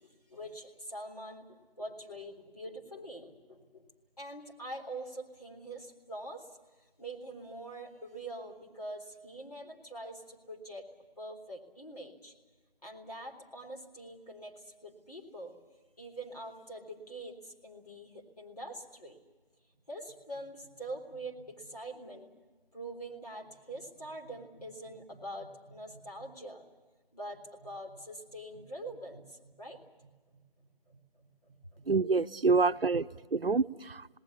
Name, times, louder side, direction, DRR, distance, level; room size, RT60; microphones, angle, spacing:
voice 1, 0.0-3.9 4.2-6.5 7.0-10.9 11.2-12.3 12.8-15.5 16.0-19.2 19.9-22.3 22.7-26.6 27.1-30.4 30.9-31.9, right 1 dB, 40° left, 1 dB, 3.7 m, -44 dB
voice 2, 31.9-34.2, right 4 dB, 75° right, 12 dB, 0.8 m, -27 dB
28.5 x 19.5 x 7.0 m, 1.2 s
figure-of-eight pair, 180°, 29 cm